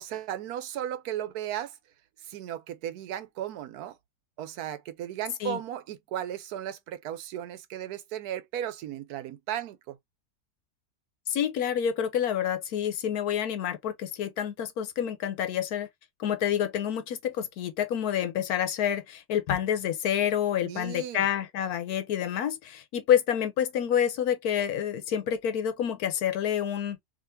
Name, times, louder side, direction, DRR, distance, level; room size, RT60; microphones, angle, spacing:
voice 1, 0.0-1.7 2.3-3.9 4.4-10.0 20.6-21.3, right 11 dB, 85° right, 1.2 m, -35 dB
voice 2, 11.3-15.9 16.2-27.0, left 9 dB, 90° left, 1.3 m, -28 dB
3.7 x 2.8 x 2.6 m
omnidirectional pair, 1.6 m